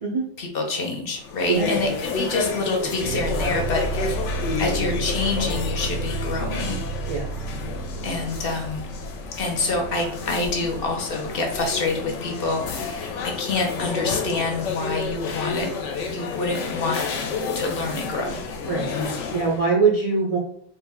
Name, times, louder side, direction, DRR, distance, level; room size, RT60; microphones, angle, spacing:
voice 1, 0.4-4.3 4.6-6.8 8.0-8.9 9.4-15.7 16.1-17.0 17.5-18.4, left 3 dB, 60° left, 2 dB, 0.8 m, -27 dB
sound 1, 1.2-19.6, left 4 dB, 80° left, 0.9 m, -30 dB
voice 2, 1.5-1.8 7.1-7.5 18.6-18.9 19.3-20.4, right 5 dB, 55° right, -3 dB, 0.4 m, -22 dB
sound 2, 3.0-12.1, right 4 dB, 85° right, 0.9 m, -32 dB
3.2 x 2.1 x 3.5 m, 0.65 s
omnidirectional pair, 1.2 m